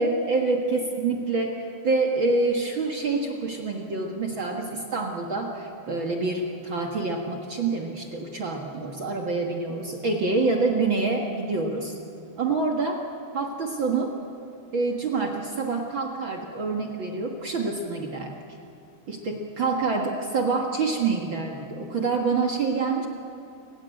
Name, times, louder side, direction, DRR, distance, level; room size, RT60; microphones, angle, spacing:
voice 1, 0.0-11.9 12.4-13.1 13.3-14.1 14.7-18.3 19.1-23.1, right 3 dB, 50° right, 2 dB, 1.5 m, -26 dB
28.5 x 16.0 x 9.1 m, 2.6 s
omnidirectional pair, 4.4 m